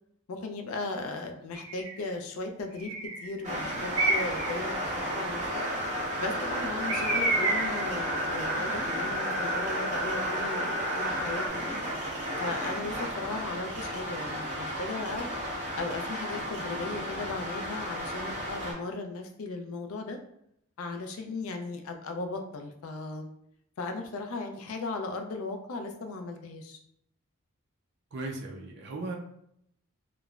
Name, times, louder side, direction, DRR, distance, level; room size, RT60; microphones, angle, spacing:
voice 1, 0.3-2.9 3.2-4.8 5.2-5.6 6.2-11.8 12.4-15.3 15.8-20.2 20.8-23.3 23.8-26.8, left 3 dB, 75° left, 5 dB, 0.4 m, -37 dB
Bird, 1.5-2.0 2.8-3.3 3.9-4.5 6.9-7.9, right 2 dB, 75° right, 0.9 m, -29 dB
sound 1, 3.4-18.7, equal, 35° right, 0.8 m, -33 dB
sound 2, 5.5-11.5, right 1 dB, 10° right, 1.3 m, -35 dB
voice 2, 28.1-29.2, right 2 dB, 50° right, 0 dB, 0.4 m, -37 dB
3.0 x 2.0 x 2.3 m, 0.73 s
head